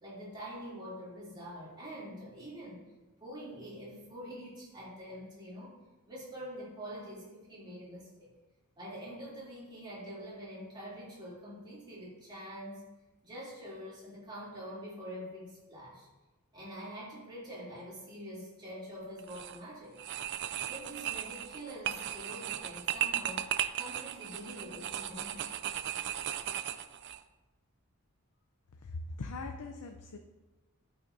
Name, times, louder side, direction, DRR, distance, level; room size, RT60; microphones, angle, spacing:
voice 1, 0.0-2.8 3.2-5.8 6.1-8.3 8.8-12.8 13.2-16.1 16.5-20.0 20.7-25.5, equal, 20° right, -8 dB, 2.9 m, -45 dB
sound 1, 19.2-19.6 20.0-27.2, right 11 dB, 50° right, 0.4 m, -36 dB
voice 2, 28.8-30.2, left 3 dB, 85° left, 4 dB, 0.6 m, -41 dB
13.0 x 5.7 x 2.7 m, 1.1 s
head